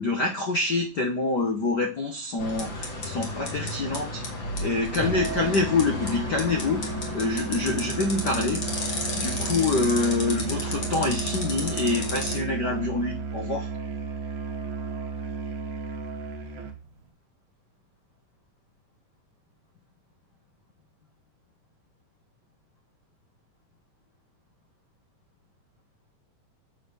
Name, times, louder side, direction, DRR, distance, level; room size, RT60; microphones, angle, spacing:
voice 1, 0.0-4.2 4.6-6.8 7.1-8.8 9.1-13.7, left 3 dB, 85° left, 0.9 m, -26 dB
sound 1, 2.4-12.4, left 2 dB, 40° left, 2.7 m, -33 dB
Musical instrument, 5.0-16.8, right 4 dB, 50° right, 1.6 m, -33 dB
7.8 x 7.4 x 6.1 m
omnidirectional pair, 3.8 m